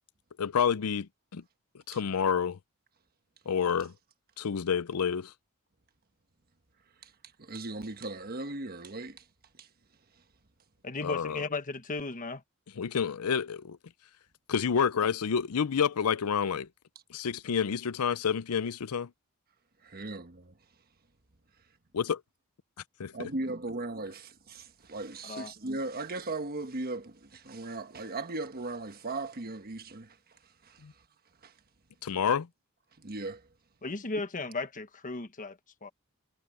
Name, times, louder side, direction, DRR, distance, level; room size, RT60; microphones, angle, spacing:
voice 1, 0.4-1.4 1.9-2.6 3.5-3.9 4.4-5.3 11.0-11.4 12.8-13.8 14.5-16.7 17.1-19.1 21.9-22.1 23.2-23.3 30.8-30.9 32.0-32.5, left 7 dB, 90° left, 0.5 m, -29 dB
voice 2, 7.4-9.3 9.6-9.7 19.8-20.6 23.1-31.0 31.4-31.5 33.0-33.5, right 2 dB, 45° right, 1.3 m, -38 dB
voice 3, 10.8-12.4 25.2-25.5 33.8-35.9, left 3 dB, 35° left, 1.3 m, -36 dB
head